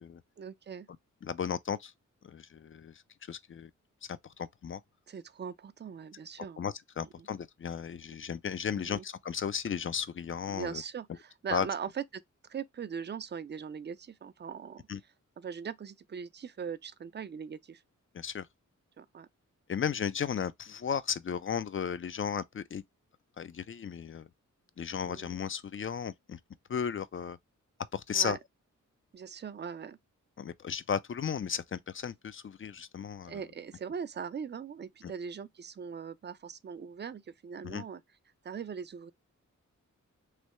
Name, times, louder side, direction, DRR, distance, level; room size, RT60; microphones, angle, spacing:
voice 1, 0.4-0.9 5.1-6.6 7.0-7.3 8.8-9.0 10.5-12.2 12.5-14.8 15.4-17.8 19.0-19.3 25.0-25.3 28.1-28.4 29.1-30.0 33.3-38.0 38.4-39.1, right 7 dB, 35° right, 0.4 m, -40 dB
voice 2, 1.2-1.9 2.2-3.0 3.3-3.7 4.1-4.8 6.6-10.8 11.5-11.7 14.9-15.0 18.1-18.5 19.7-22.8 23.4-24.3 24.8-26.4 26.7-27.4 27.9-28.4 30.4-33.4 35.0-35.1 37.6-37.8, left 7 dB, 40° left, 0.4 m, -35 dB
3.2 x 2.7 x 3.0 m
cardioid pair, 60°, 31 cm